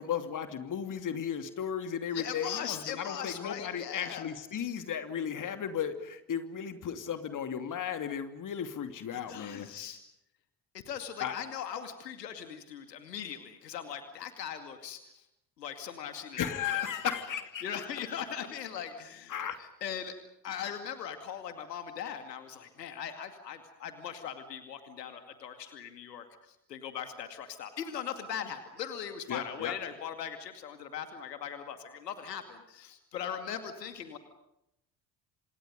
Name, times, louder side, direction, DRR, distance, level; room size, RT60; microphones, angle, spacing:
voice 1, 0.0-9.7 11.2-11.3 16.4-17.6 19.3-19.6 29.3-29.7, left 8 dB, 40° left, 8 dB, 2.7 m, -35 dB
voice 2, 2.1-4.3 9.1-10.0 10.7-15.3 15.6-16.8 17.1-17.2 17.6-20.1 20.4-34.2, left 8 dB, 75° left, 8 dB, 2.4 m, -40 dB
30.0 x 27.0 x 5.3 m, 0.81 s
figure-of-eight pair, 55°, 49 cm